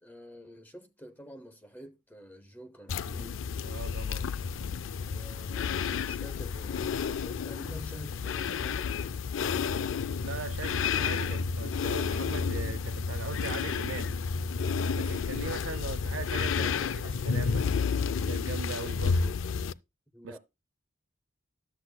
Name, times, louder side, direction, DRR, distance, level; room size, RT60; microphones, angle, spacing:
voice 1, 0.0-3.5 5.0-9.1 20.1-20.4, equal, 10° left, 0.6 m, -49 dB
sound 1, 2.9-19.7, left 5 dB, 70° left, 0.4 m, -31 dB
voice 2, 3.6-4.3 10.2-14.2 14.9-17.7 18.2-19.4 20.2-20.4, right 4 dB, 75° right, 0.5 m, -40 dB
12.5 x 8.0 x 2.2 m
head